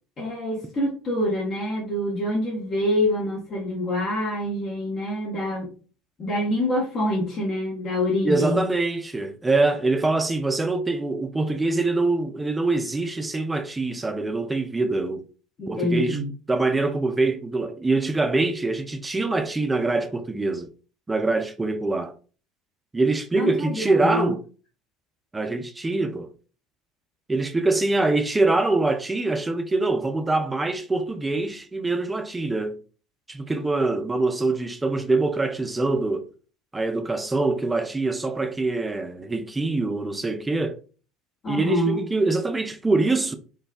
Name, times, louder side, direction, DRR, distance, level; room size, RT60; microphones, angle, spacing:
voice 1, 0.2-5.7 6.2-8.6 15.6-16.3 23.4-24.3 41.4-42.0, left 1 dB, 40° left, 0.7 m, -26 dB
voice 2, 8.2-15.2 15.7-16.2 16.5-20.7 21.1-22.1 22.9-24.4 25.3-26.3 27.3-32.8 33.3-36.3 36.7-40.8 41.5-43.3, right 3 dB, 15° right, 0.3 m, -24 dB
2.5 x 2.1 x 2.3 m
figure-of-eight pair, 65°, 0 cm